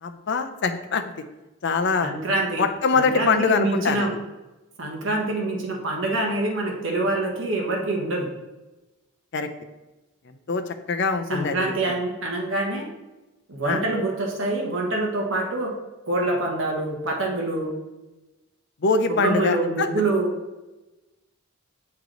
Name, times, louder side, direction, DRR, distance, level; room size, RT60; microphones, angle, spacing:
voice 1, 0.0-1.0 1.6-2.1 2.6-4.1 9.3-9.5 10.5-11.9 13.7-13.8 18.8-19.9, left 4 dB, 55° left, 7 dB, 0.5 m, -23 dB
voice 2, 2.0-2.6 2.9-4.1 4.8-8.3 11.3-12.9 13.5-15.7 16.1-17.7 19.1-20.3, right 2 dB, 60° right, 0 dB, 1.1 m, -25 dB
8.1 x 3.3 x 3.8 m, 1.1 s
head